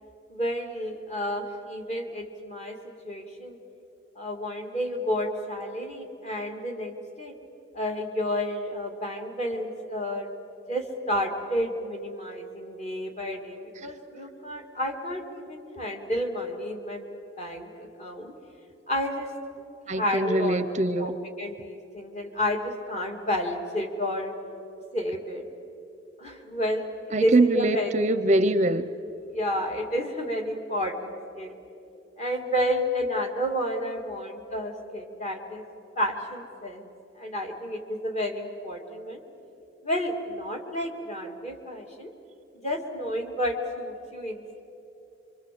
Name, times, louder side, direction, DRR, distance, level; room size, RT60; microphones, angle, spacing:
voice 1, 0.3-3.6 4.2-7.3 7.7-10.3 10.7-17.1 17.4-18.3 18.9-19.3 19.9-20.6 21.0-24.3 24.9-25.4 26.2-27.9 29.3-31.5 32.2-35.6 36.0-36.9 37.2-39.2 39.8-42.1 42.6-44.6, equal, 35° left, 2 dB, 2.4 m, -31 dB
voice 2, 19.9-21.1 27.1-28.9, right 2 dB, 35° right, 12 dB, 0.6 m, -23 dB
26.5 x 24.5 x 7.7 m, 2.9 s
head